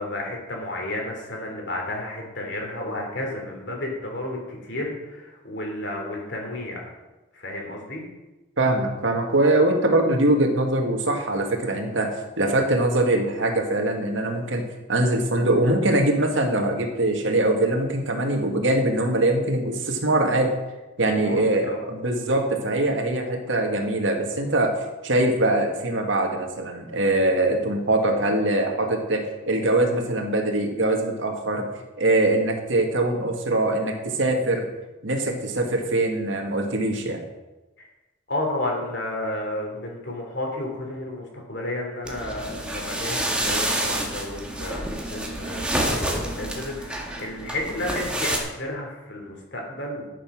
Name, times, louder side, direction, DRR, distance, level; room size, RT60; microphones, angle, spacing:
voice 1, 0.0-6.9 7.3-8.1 21.2-21.8 37.8-37.9 38.3-50.1, left 1 dB, 60° left, 1 dB, 3.1 m, -32 dB
voice 2, 8.6-14.6 14.9-20.5 21.0-24.8 25.0-31.7 32.0-34.6 35.0-37.2, right 2 dB, 70° right, 3 dB, 1.9 m, -22 dB
sound 1, 42.0-48.4, right 1 dB, 5° right, 1.6 m, -28 dB
12.5 x 7.0 x 6.1 m, 1.1 s
head